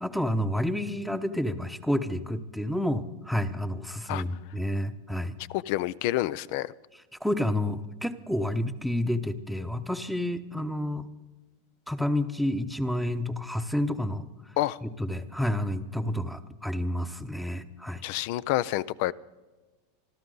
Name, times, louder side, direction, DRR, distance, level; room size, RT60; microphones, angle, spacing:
voice 1, 0.0-5.4 7.2-11.0 11.9-14.3 14.8-18.0, left 1 dB, ahead, 11 dB, 0.9 m, -29 dB
voice 2, 5.5-6.7 14.6-14.8 18.0-19.1, left 15 dB, 60° left, 19 dB, 0.5 m, -28 dB
26.0 x 12.5 x 3.9 m, 1.2 s
supercardioid pair, 125°, 0 cm